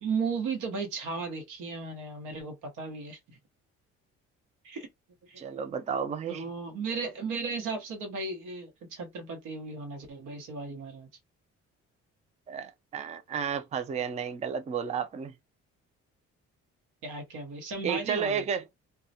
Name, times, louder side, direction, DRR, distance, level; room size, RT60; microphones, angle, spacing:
voice 1, 0.0-3.4 4.6-4.9 5.2-5.6 6.3-11.1 17.0-18.4, right 4 dB, 90° right, 0.9 m, -35 dB
voice 2, 5.4-6.5 12.5-15.3 17.8-18.6, right 7 dB, 25° right, 0.4 m, -32 dB
2.2 x 2.0 x 2.7 m
cardioid pair, 90°, 30 cm